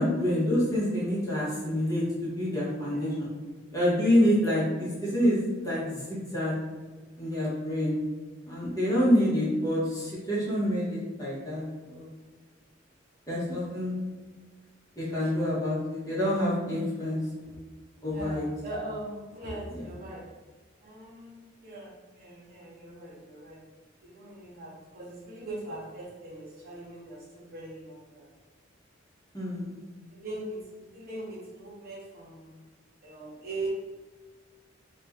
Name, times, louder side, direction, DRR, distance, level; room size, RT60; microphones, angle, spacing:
voice 1, 0.0-3.3 3.7-6.5 7.2-7.9 8.5-12.1 13.3-13.9 15.0-17.2 18.0-18.5 29.3-29.8, equal, 20° left, -9 dB, 1.4 m, -27 dB
voice 2, 15.0-15.4 17.4-17.6 18.1-20.3 20.8-23.6 24.0-28.3 30.1-32.6 33.0-33.7, right 2 dB, 50° right, -5 dB, 1.0 m, -41 dB
3.1 x 3.1 x 3.6 m, 1.3 s
head